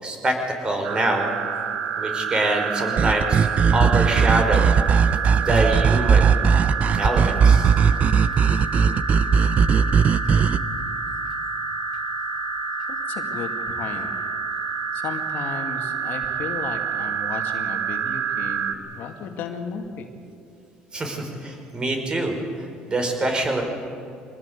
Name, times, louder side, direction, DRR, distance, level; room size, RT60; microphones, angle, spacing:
voice 1, 0.0-0.4 0.6-1.3 2.0-3.5 3.7-4.7 5.3-6.3 6.9-7.7 20.9-23.6, right 2 dB, 25° right, 4 dB, 5.3 m, -25 dB
sound 1, 0.8-18.7, right 6 dB, 80° right, 2.0 m, -28 dB
sound 2, 3.0-10.6, right 6 dB, 40° right, 0.7 m, -18 dB
voice 2, 12.9-14.1 14.9-20.1, left 6 dB, 65° left, 5 dB, 2.3 m, -34 dB
24.5 x 19.5 x 8.2 m, 2.6 s
cardioid pair, 105°, 3 cm